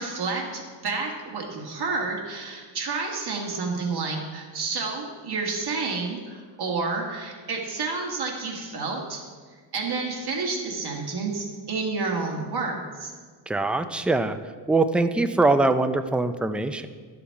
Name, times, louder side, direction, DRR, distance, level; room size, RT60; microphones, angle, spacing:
voice 1, 0.0-9.2 9.7-13.1, right 4 dB, 55° right, -1 dB, 1.8 m, -30 dB
voice 2, 13.5-14.4 14.7-16.9, right 2 dB, 5° right, 9 dB, 0.3 m, -22 dB
11.5 x 7.3 x 4.7 m, 1.5 s
wide cardioid pair, 115°, 45 cm